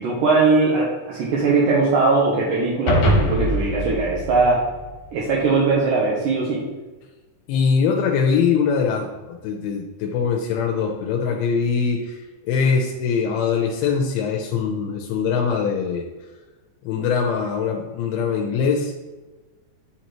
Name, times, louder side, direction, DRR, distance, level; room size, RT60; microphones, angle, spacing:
voice 1, 0.0-4.6 5.1-6.6, right 3 dB, 75° right, -4 dB, 2.2 m, -20 dB
sound 1, 2.9-5.4, equal, 70° left, 2.9 m, -23 dB
voice 2, 7.5-16.1 16.8-19.0, left 6 dB, 85° left, 1 dB, 2.6 m, -22 dB
9.8 x 4.2 x 3.0 m, 1.2 s
omnidirectional pair, 4.4 m